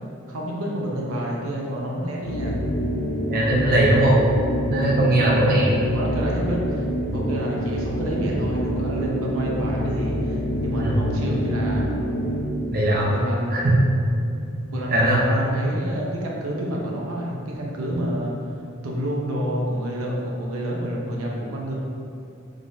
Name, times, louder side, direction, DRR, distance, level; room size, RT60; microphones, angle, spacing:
voice 1, 0.3-2.6 5.9-11.9 13.1-13.9 14.7-18.3 18.8-21.7, right 1 dB, 85° right, -3 dB, 0.7 m, -28 dB
sound 1, 2.2-12.6, equal, 80° left, 0.6 m, -26 dB
voice 2, 3.3-4.2 4.7-5.8 10.8-11.0 12.7-13.1 13.5-13.7 14.6-15.3, right 1 dB, 45° right, -4 dB, 0.7 m, -20 dB
4.9 x 3.7 x 2.7 m, 2.6 s
head